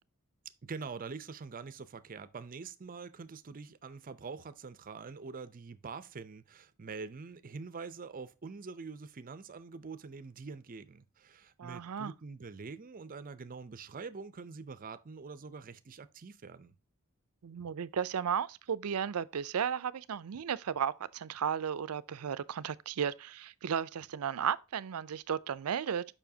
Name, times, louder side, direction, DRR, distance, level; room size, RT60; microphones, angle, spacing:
voice 1, 0.6-16.7, right 4 dB, 40° right, 0.5 m, -45 dB
voice 2, 11.6-12.1 17.4-26.0, right 8 dB, 90° right, 0.5 m, -34 dB
7.0 x 5.5 x 2.7 m
head